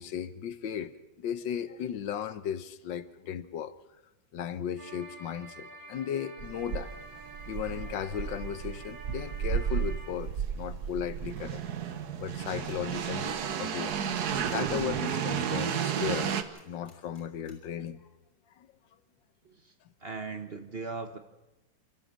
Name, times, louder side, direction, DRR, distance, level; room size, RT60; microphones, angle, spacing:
voice 1, 0.0-3.7 4.3-6.9 7.5-11.6 12.2-14.0 14.5-18.0 18.6-18.7, left 9 dB, 85° left, 12 dB, 1.6 m, -36 dB
sound 1, 4.8-10.1, right 2 dB, 90° right, 3.7 m, -48 dB
sound 2, 6.4-16.4, right 8 dB, 60° right, 1.5 m, -33 dB
sound 3, 12.7-13.0 13.3-17.5, left 1 dB, 35° left, 5.0 m, -59 dB
voice 2, 20.0-21.2, right 4 dB, 40° right, 7 dB, 1.1 m, -38 dB
27.0 x 13.5 x 7.5 m, 1.0 s
omnidirectional pair, 2.0 m